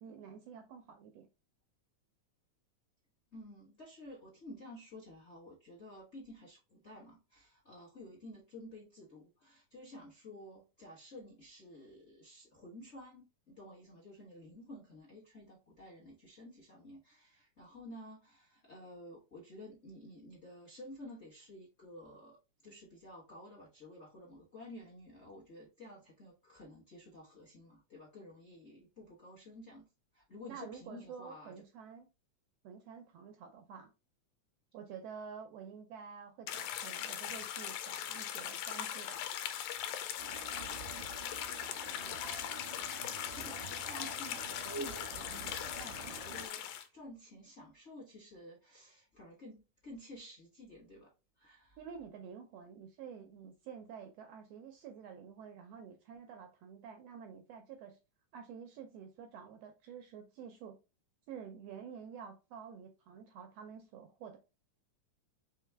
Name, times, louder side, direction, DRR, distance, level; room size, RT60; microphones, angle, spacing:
voice 1, 0.0-1.3 30.5-32.1 32.6-33.9 34.7-39.3 51.8-58.0 58.3-60.8 61.3-64.4, right 7 dB, 80° right, 1.5 m, -49 dB
voice 2, 3.3-29.9 30.1-31.5 41.8-42.5 42.7-46.6 46.9-51.1 51.4-51.8, left 1 dB, 50° left, 0.8 m, -52 dB
sound 1, 36.5-46.8, left 10 dB, 85° left, 2.1 m, -40 dB
sound 2, 40.2-46.5, right 4 dB, 50° right, 0.7 m, -48 dB
4.7 x 3.2 x 3.3 m
omnidirectional pair, 3.5 m